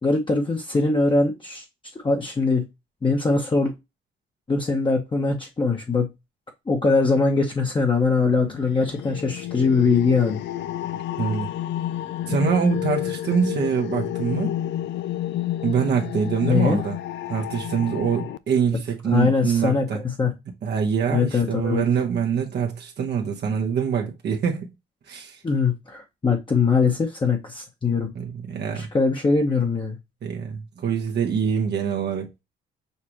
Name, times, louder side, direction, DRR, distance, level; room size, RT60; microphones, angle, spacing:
voice 1, 0.0-1.6 2.0-2.6 3.0-3.7 4.5-6.1 6.7-10.4 16.4-16.8 19.1-20.3 21.1-21.8 25.4-28.1 28.7-30.0, left 4 dB, 25° left, 1.0 m, -22 dB
sound 1, 8.2-18.4, left 12 dB, 65° left, 0.4 m, -30 dB
voice 2, 11.2-11.5 12.3-14.5 15.6-17.0 17.3-20.0 20.6-24.7 25.1-25.4 28.1-28.9 30.2-32.4, right 6 dB, 60° right, 1.0 m, -24 dB
6.7 x 2.4 x 3.0 m
cardioid pair, 90°, 20 cm